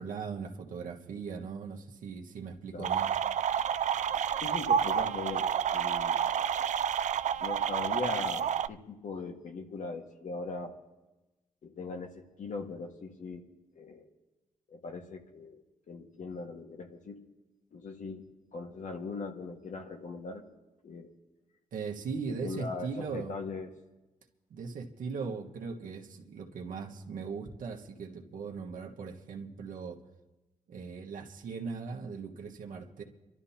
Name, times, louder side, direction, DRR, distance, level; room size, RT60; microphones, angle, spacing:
voice 1, 0.0-3.1 21.7-23.4 24.5-30.0 30.7-33.0, right 5 dB, 80° right, 1 dB, 1.5 m, -39 dB
sound 1, 2.8-8.7, right 8 dB, 60° right, 0.4 m, -29 dB
voice 2, 4.4-6.3 7.4-10.8 11.6-13.5 13.7-14.1 14.7-17.2 17.7-20.5 20.8-21.1 22.3-23.7, left 4 dB, 65° left, 3 dB, 1.7 m, -40 dB
27.5 x 12.5 x 2.9 m, 1.1 s
cardioid pair, 70°, 14 cm